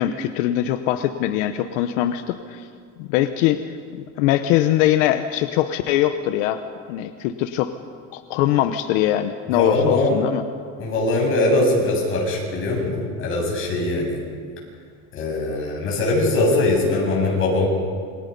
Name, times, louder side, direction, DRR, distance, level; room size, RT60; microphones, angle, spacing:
voice 1, 0.0-2.7 3.0-6.6 6.9-7.7 8.1-10.4, left 12 dB, 80° left, 9 dB, 1.1 m, -22 dB
voice 2, 9.5-10.1 10.8-14.2 15.1-17.7, left 2 dB, 35° left, -2 dB, 7.8 m, -21 dB
28.0 x 24.5 x 5.5 m, 2.1 s
cardioid pair, 165°, 37 cm